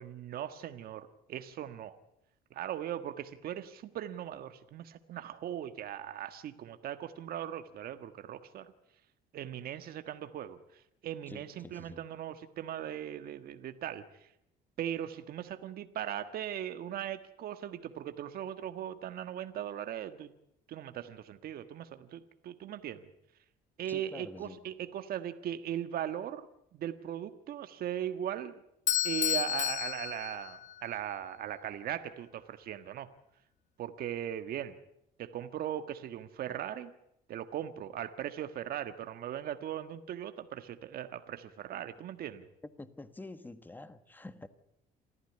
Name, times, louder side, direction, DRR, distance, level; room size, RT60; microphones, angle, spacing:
voice 1, 0.0-2.0 2.5-8.7 9.3-14.3 14.8-20.3 20.7-23.1 23.8-26.5 26.7-28.6 29.0-33.1 33.8-34.8 35.2-36.9 37.3-42.5, right 10 dB, 65° right, 1.5 m, -39 dB
voice 2, 11.3-12.0 23.9-24.7 42.8-44.5, left 2 dB, 10° left, 1.5 m, -47 dB
Bell / Doorbell, 28.9-31.0, left 11 dB, 45° left, 0.9 m, -32 dB
27.0 x 14.5 x 9.9 m
cardioid pair, 110°, 17 cm